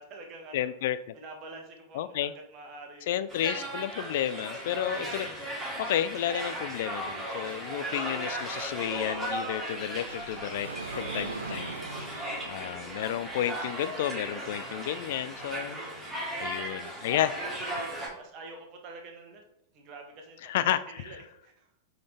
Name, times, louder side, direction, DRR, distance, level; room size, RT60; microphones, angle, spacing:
voice 1, 0.0-0.7 1.1-3.3 12.2-12.4 16.3-16.9 17.2-17.5 18.1-19.4 19.7-21.7, right 3 dB, 40° right, 2 dB, 1.5 m, -47 dB
voice 2, 0.5-1.0 1.9-2.3 3.1-10.7 10.9-11.7 12.2-15.8 16.4-17.3 20.4-21.2, left 11 dB, 55° left, 14 dB, 0.3 m, -31 dB
sound 1, 3.3-18.1, right 1 dB, 15° right, 2.4 m, -36 dB
Sliding door, 8.5-13.5, right 4 dB, 75° right, 0.5 m, -42 dB
8.4 x 3.9 x 3.3 m, 0.78 s
figure-of-eight pair, 90°, 0 cm